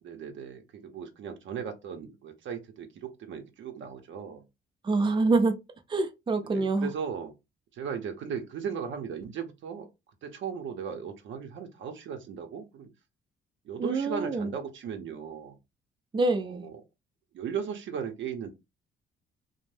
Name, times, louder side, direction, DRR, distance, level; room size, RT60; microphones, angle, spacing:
voice 1, 0.0-4.4 6.4-7.3 7.7-9.9 10.2-12.9 13.7-15.6 16.5-16.7 17.3-18.5, right 7 dB, 75° right, 0.7 m, -37 dB
voice 2, 4.8-5.6 5.9-6.9 13.8-14.5 16.1-16.7, right 3 dB, 25° right, 0.5 m, -26 dB
2.5 x 2.1 x 3.2 m
cardioid pair, 90°, 20 cm